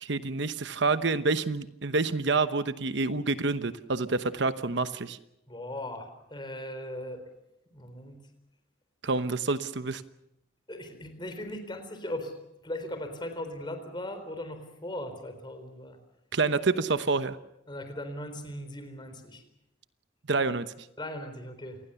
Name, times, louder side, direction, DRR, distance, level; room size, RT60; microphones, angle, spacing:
voice 1, 0.0-5.2 9.0-10.0 16.3-17.4 20.3-20.9, right 3 dB, 60° right, 11 dB, 1.0 m, -28 dB
voice 2, 5.5-7.2 7.7-8.2 10.7-12.4 12.6-16.0 17.7-19.4 21.0-21.8, left 1 dB, 25° left, 8 dB, 4.1 m, -38 dB
28.0 x 20.0 x 7.0 m, 0.83 s
head